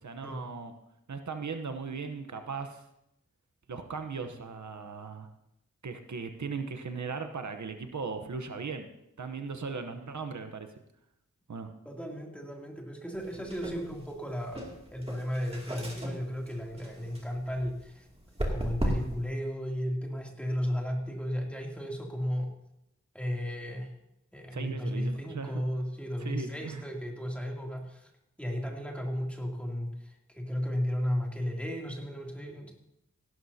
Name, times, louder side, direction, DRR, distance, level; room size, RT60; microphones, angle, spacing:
voice 1, 0.0-0.7 1.1-2.8 3.7-5.3 5.8-8.9 9.2-10.7 11.5-11.7 24.5-25.6 26.2-26.8, right 5 dB, 75° right, 7 dB, 0.9 m, -38 dB
voice 2, 11.8-14.6 14.9-18.1 18.5-22.5 23.1-23.9 24.3-28.1 28.4-32.7, equal, 5° left, -1 dB, 2.7 m, -34 dB
sound 1, 13.1-19.3, equal, 20° right, 2.4 m, -37 dB
16.5 x 12.5 x 2.8 m, 0.82 s
wide cardioid pair, 70°, 29 cm